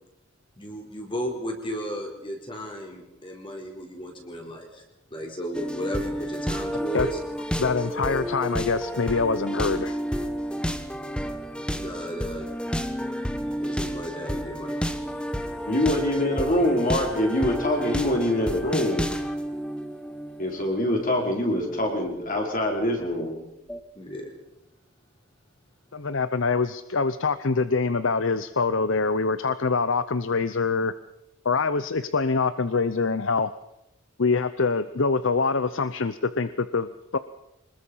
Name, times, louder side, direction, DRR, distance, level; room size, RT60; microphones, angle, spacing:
voice 1, 0.6-4.8 5.1-7.2 11.7-12.5 13.5-14.7 23.9-24.3, equal, 25° left, 1 dB, 4.3 m, -34 dB
sound 1, 5.5-23.3 23.7-23.8, equal, 5° left, 1.2 m, -31 dB
voice 2, 7.6-10.0 25.9-30.9 31.4-33.5 34.2-37.2, left 4 dB, 60° left, 13 dB, 0.7 m, -25 dB
voice 3, 15.7-19.1 20.4-23.4, left 1 dB, 40° left, 1 dB, 5.1 m, -24 dB
25.0 x 20.5 x 5.7 m, 0.89 s
head